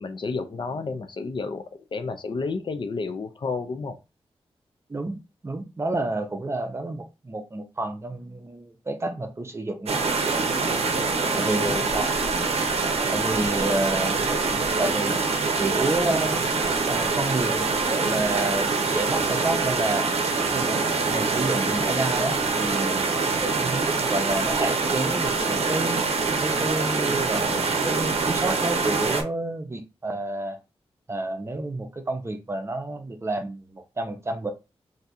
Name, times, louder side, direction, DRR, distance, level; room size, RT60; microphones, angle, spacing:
voice 1, 0.0-1.6 1.9-4.0 11.2-11.9, left 4 dB, 50° left, 0.5 m, -31 dB
voice 2, 4.9-10.0 11.3-12.1 13.1-15.2 15.6-16.4 16.9-20.1 20.5-26.1 26.4-30.6 31.1-34.5, right 2 dB, 25° right, 0.5 m, -30 dB
sound 1, 9.9-29.2, right 4 dB, 80° right, 0.6 m, -25 dB
2.6 x 2.3 x 4.1 m
wide cardioid pair, 125°, 10 cm